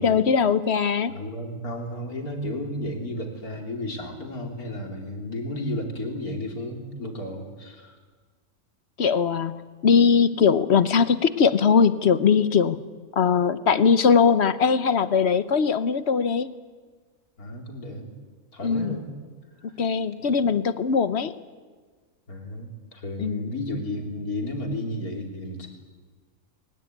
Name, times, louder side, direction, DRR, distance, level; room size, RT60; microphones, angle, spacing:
voice 1, 0.0-1.1 9.0-9.6 9.8-12.8 13.2-16.5 18.6-19.0 19.8-21.3 23.2-23.4, left 6 dB, 50° left, 13 dB, 1.1 m, -20 dB
voice 2, 1.1-8.0 17.4-18.1 18.5-19.1 19.6-19.7 22.3-25.7, left 1 dB, 80° left, 2 dB, 3.8 m, -33 dB
21.5 x 20.0 x 9.4 m, 1.5 s
omnidirectional pair, 1.5 m